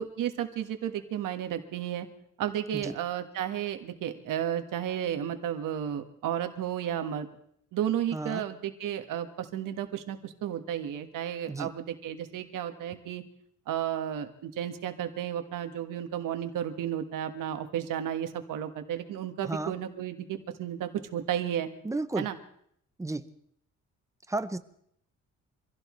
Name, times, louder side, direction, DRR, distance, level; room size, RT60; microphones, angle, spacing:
voice 1, 0.0-2.1 2.4-7.3 7.7-13.2 13.7-21.7 22.2-22.3, right 10 dB, 90° right, 7 dB, 1.6 m, -33 dB
voice 2, 8.1-8.4 11.5-11.7 19.4-19.7 21.8-22.3 23.0-23.2 24.3-24.6, right 2 dB, 10° right, 12 dB, 0.6 m, -33 dB
25.5 x 16.0 x 3.2 m, 0.69 s
cardioid pair, 145°, 31 cm